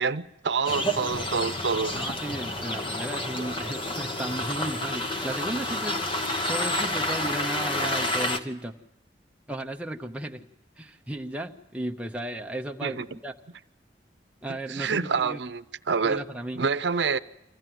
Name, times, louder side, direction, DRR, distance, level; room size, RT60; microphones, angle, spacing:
voice 1, 0.0-1.9 12.8-13.1 14.5-16.2 16.5-17.2, right 5 dB, 75° right, 0.7 m, -27 dB
sound 1, 0.6-8.4, left 1 dB, 30° left, 1.0 m, -29 dB
voice 2, 1.9-8.7 9.5-10.5 10.8-13.3 14.4-15.4 16.0-16.6, right 1 dB, 5° right, 0.8 m, -35 dB
25.5 x 15.5 x 9.2 m
head